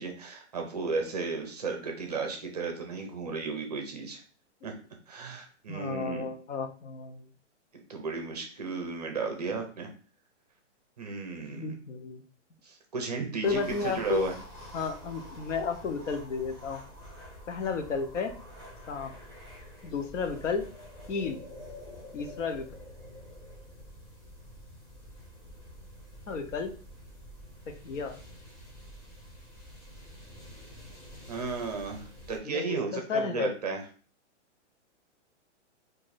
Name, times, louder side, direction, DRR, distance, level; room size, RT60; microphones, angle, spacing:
voice 1, 0.0-4.2 4.6-4.8 5.1-6.3 7.9-9.9 11.0-11.7 12.6-14.4 31.3-33.8, right 4 dB, 35° right, 3 dB, 0.5 m, -34 dB
voice 2, 5.7-7.2 11.5-12.2 13.4-14.2 14.7-16.8 17.5-18.3 18.9-19.1 19.8-20.6 21.1-21.4 22.1-22.7 26.3-26.7 27.7-28.2 32.4-33.5, left 5 dB, 80° left, 6 dB, 0.9 m, -32 dB
sound 1, 13.4-32.4, equal, 10° left, 1.6 m, -48 dB
3.1 x 2.6 x 3.9 m, 0.39 s
hypercardioid pair, 175°, 37 cm